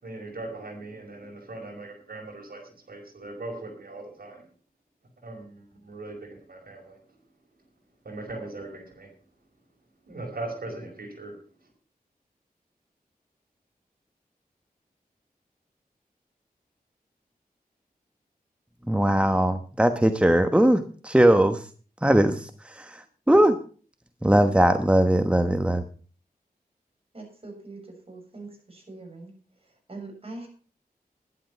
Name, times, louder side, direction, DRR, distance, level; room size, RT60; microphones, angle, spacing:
voice 1, 0.0-4.4 5.2-7.0 8.0-9.1 10.1-11.3, right 2 dB, 70° right, 2 dB, 5.4 m, -39 dB
voice 2, 18.9-21.6 22.0-23.6 24.2-25.8, right 1 dB, 5° right, 8 dB, 1.2 m, -20 dB
voice 3, 27.1-27.8 28.1-29.3 29.9-30.5, right 2 dB, 40° right, 2 dB, 6.9 m, -42 dB
11.5 x 11.5 x 5.8 m, 0.40 s
wide cardioid pair, 65°, 16 cm